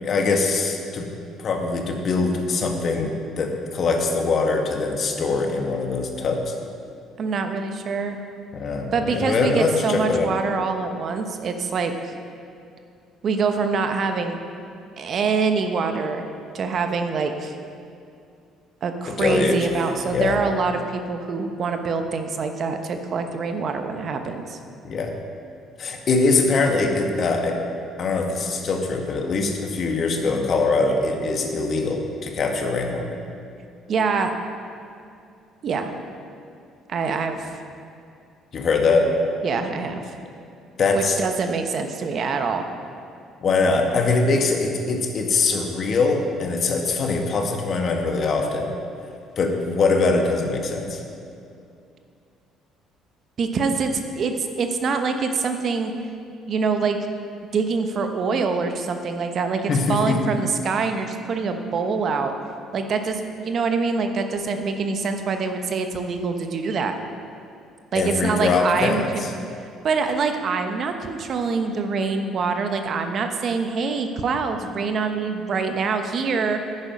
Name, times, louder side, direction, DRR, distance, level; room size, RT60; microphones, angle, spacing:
voice 1, 0.0-1.1 1.4-6.5 8.5-10.3 19.0-19.7 20.1-20.4 24.8-25.1 25.8-27.6 28.0-33.1 38.5-39.1 40.8-41.2 43.4-48.7 49.4-51.0 59.7-60.3 67.9-69.3, left 3 dB, 50° left, 3 dB, 1.5 m, -22 dB
voice 2, 7.2-8.2 8.9-12.1 13.2-14.4 15.0-16.3 16.5-17.5 18.8-24.6 33.9-34.3 35.6-35.9 36.9-37.5 39.4-40.2 41.0-42.6 53.4-55.9 56.5-57.0 57.5-62.3 62.7-66.9 67.9-69.3 69.8-76.6, right 4 dB, 55° right, 6 dB, 0.9 m, -25 dB
9.9 x 8.7 x 5.4 m, 2.5 s
supercardioid pair, 75°, 0 cm